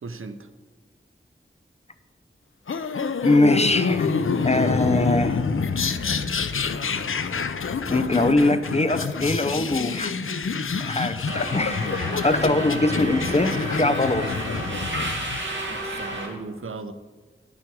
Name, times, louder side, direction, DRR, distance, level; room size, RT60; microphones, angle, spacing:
voice 1, 0.0-0.5 15.7-16.9, right 3 dB, 85° right, 9 dB, 0.7 m, -36 dB
sound 1, 2.7-15.4, left 5 dB, 80° left, 0.5 m, -27 dB
voice 2, 3.2-5.4 7.9-10.2 10.8-14.3, left 2 dB, 30° left, 10 dB, 0.7 m, -22 dB
Subway metro underground, 11.3-16.3, right 1 dB, 65° right, 2.1 m, -32 dB
11.0 x 8.5 x 4.7 m, 1.3 s
wide cardioid pair, 60°, 21 cm